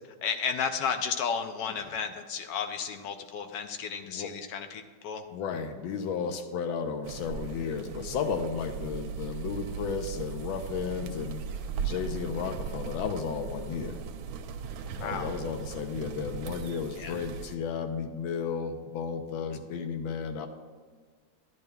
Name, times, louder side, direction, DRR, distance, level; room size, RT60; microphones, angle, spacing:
voice 1, 0.2-5.2 15.0-15.3 16.9-17.1, left 6 dB, 70° left, 7 dB, 1.2 m, -33 dB
voice 2, 5.3-11.5 11.8-14.0 15.0-20.5, left 6 dB, 90° left, 7 dB, 1.5 m, -33 dB
sound 1, 7.0-17.6, right 6 dB, 85° right, 1.4 m, -38 dB
10.5 x 10.5 x 2.3 m, 1.5 s
omnidirectional pair, 2.1 m